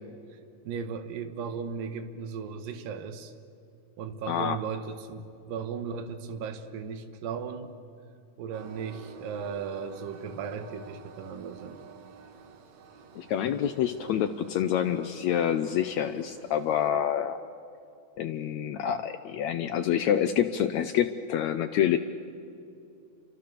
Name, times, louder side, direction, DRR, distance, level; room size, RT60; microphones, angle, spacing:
voice 1, 0.6-3.3 4.0-7.7 8.4-11.8 18.8-19.0, right 6 dB, 75° right, 8 dB, 3.0 m, -36 dB
voice 2, 4.3-4.6 13.1-17.4 18.2-22.0, left 10 dB, 85° left, 8 dB, 1.6 m, -27 dB
Train, 8.5-16.9, right 6 dB, 60° right, 2.3 m, -50 dB
30.0 x 25.0 x 6.8 m, 2.6 s
omnidirectional pair, 4.1 m